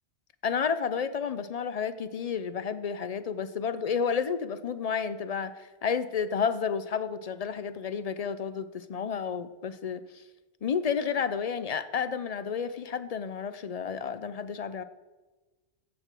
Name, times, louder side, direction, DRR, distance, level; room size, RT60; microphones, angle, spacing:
voice 1, 0.4-10.0 10.6-14.8, left 6 dB, 55° left, 13 dB, 0.4 m, -31 dB
15.5 x 6.3 x 4.5 m, 1.2 s
omnidirectional pair, 1.2 m